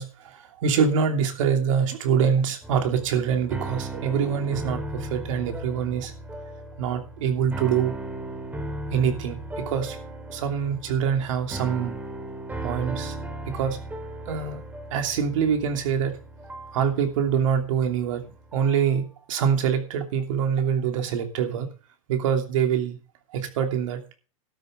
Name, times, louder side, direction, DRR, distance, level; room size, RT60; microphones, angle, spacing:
voice 1, 0.0-6.1 6.8-7.9 8.9-10.0 10.3-12.0 12.6-13.2 13.5-13.8 14.3-14.6 14.9-16.2 16.7-21.7 22.1-23.0 23.3-24.1, right 7 dB, 65° right, 5 dB, 2.9 m, -25 dB
sound 1, 2.6-18.9, right 1 dB, 10° right, 2.4 m, -37 dB
12.5 x 7.2 x 6.5 m, 0.35 s
hypercardioid pair, 120°, 18 cm